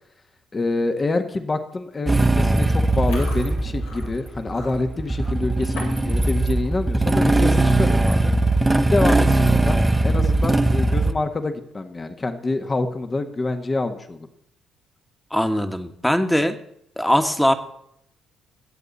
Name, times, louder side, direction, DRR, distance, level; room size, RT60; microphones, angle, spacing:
voice 1, 0.5-8.3 8.9-14.3, left 2 dB, 30° left, 7 dB, 1.7 m, -26 dB
Motorcycle / Engine starting, 2.1-11.1, right 2 dB, 15° right, 1.3 m, -20 dB
Chewing mastication, 2.9-6.1 6.4-6.8 7.2-7.4 8.2-8.3 8.5-8.8 9.2-9.3 10.8-11.4, left 2 dB, 85° left, 5.9 m, -41 dB
voice 2, 15.3-16.6 17.0-17.5, equal, 5° left, 7 dB, 1.8 m, -20 dB
22.5 x 8.3 x 4.2 m, 0.72 s
hypercardioid pair, 55°, 0 cm